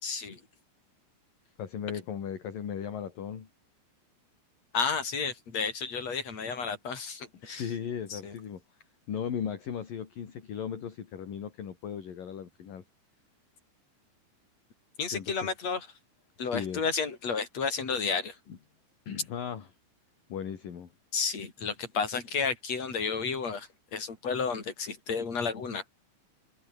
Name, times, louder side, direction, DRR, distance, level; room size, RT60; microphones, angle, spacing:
voice 1, 0.0-0.4 4.7-7.7 8.1-8.3 15.0-15.9 16.4-18.4 21.1-25.8, left 5 dB, 35° left, 5.9 m, -32 dB
voice 2, 1.6-3.5 7.5-8.6 9.1-12.8 15.1-15.3 16.4-16.8 18.5-18.6 19.1-19.7 20.3-20.9, left 8 dB, 50° left, 4.3 m, -37 dB
omnidirectional pair, 5.3 m